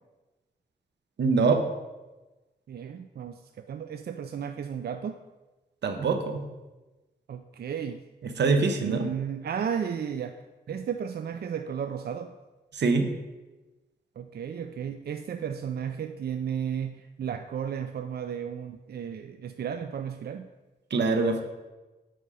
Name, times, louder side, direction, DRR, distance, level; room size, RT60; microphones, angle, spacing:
voice 1, 1.2-1.6 5.8-6.5 8.2-9.0 12.7-13.1 20.9-21.4, right 4 dB, 90° right, 6 dB, 0.9 m, -24 dB
voice 2, 2.7-5.2 7.3-8.0 8.8-10.4 10.7-12.4 14.2-20.5, right 8 dB, 65° right, 7 dB, 0.4 m, -34 dB
7.9 x 5.1 x 4.8 m, 1.1 s
wide cardioid pair, 105°, 18 cm